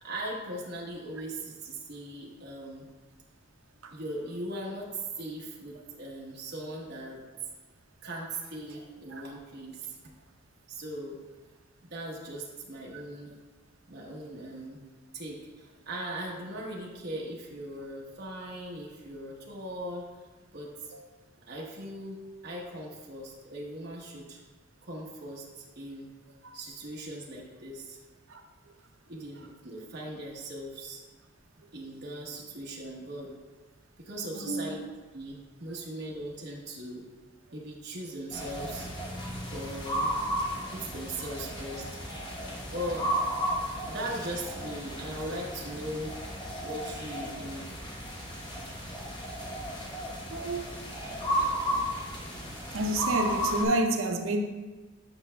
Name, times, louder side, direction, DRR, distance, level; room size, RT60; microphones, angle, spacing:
voice 1, 0.0-2.9 3.9-7.2 8.0-9.9 10.7-11.2 11.8-13.3 13.9-14.8 15.1-20.1 20.5-20.9 21.5-22.2 22.4-24.4 24.8-26.1 26.5-28.0 29.1-31.0 31.7-33.3 34.0-34.8 35.1-37.0 37.5-38.9 39.5-40.1 40.7-41.9 42.7-43.1 43.8-46.1 46.6-47.7, right 1 dB, 50° right, -3 dB, 1.0 m, -39 dB
voice 2, 34.4-34.8 45.3-45.4 50.3-50.7 51.4-51.6 52.7-54.4, right 1 dB, 75° right, 5 dB, 0.6 m, -29 dB
sound 1, 38.3-53.7, equal, 20° left, 1.0 m, -34 dB
8.8 x 5.3 x 2.2 m, 1.3 s
head